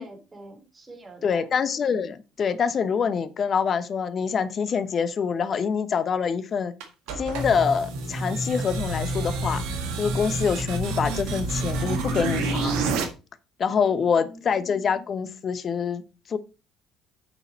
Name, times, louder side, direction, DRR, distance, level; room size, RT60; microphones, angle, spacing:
voice 1, 0.0-1.5 13.8-14.4, right 2 dB, 20° right, 3.6 m, -45 dB
voice 2, 1.2-6.7 7.2-12.8 13.6-16.0 16.3-16.4, left 6 dB, 40° left, 1.0 m, -25 dB
sound 1, 6.8-13.0, right 2 dB, 65° right, 1.7 m, -28 dB
9.0 x 6.8 x 4.2 m
figure-of-eight pair, 55°, 0 cm